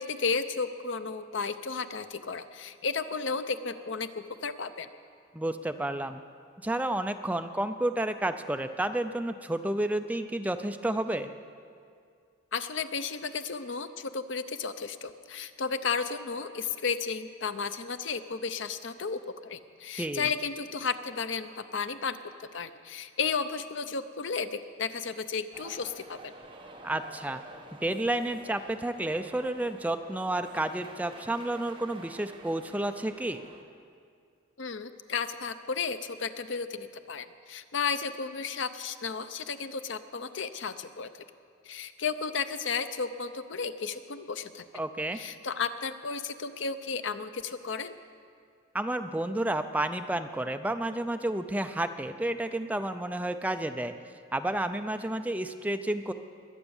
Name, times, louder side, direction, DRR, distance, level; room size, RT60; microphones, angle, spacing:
voice 1, 0.0-4.9 12.5-26.3 34.6-41.1 41.6-44.7 45.1-48.0, left 5 dB, 65° left, 11 dB, 0.7 m, -33 dB
voice 2, 5.3-6.2 6.6-11.3 20.0-20.3 26.8-27.4 27.8-33.4 44.7-45.2 48.7-53.9 54.3-56.1, right 1 dB, 10° right, 8 dB, 0.4 m, -31 dB
sound 1, 25.5-33.6, right 2 dB, 25° right, 1.3 m, -49 dB
21.5 x 9.1 x 7.2 m, 2.3 s
head